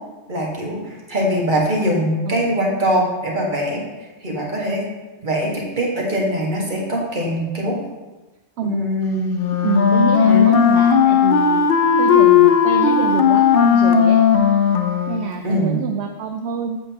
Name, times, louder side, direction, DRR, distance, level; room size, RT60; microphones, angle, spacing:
voice 1, 0.3-4.9 5.2-7.8 8.6-9.4 10.3-10.5 15.4-15.8, equal, 45° right, -2 dB, 1.7 m, -22 dB
voice 2, 2.3-2.8 8.6-8.8 9.6-11.6 12.0-14.2 15.1-16.8, right 6 dB, 70° right, 4 dB, 0.8 m, -26 dB
Wind instrument woodwind instrument, 9.3-15.4, left 7 dB, 60° left, 0.8 m, -15 dB
8.0 x 7.5 x 2.8 m, 1.2 s
omnidirectional pair, 1.2 m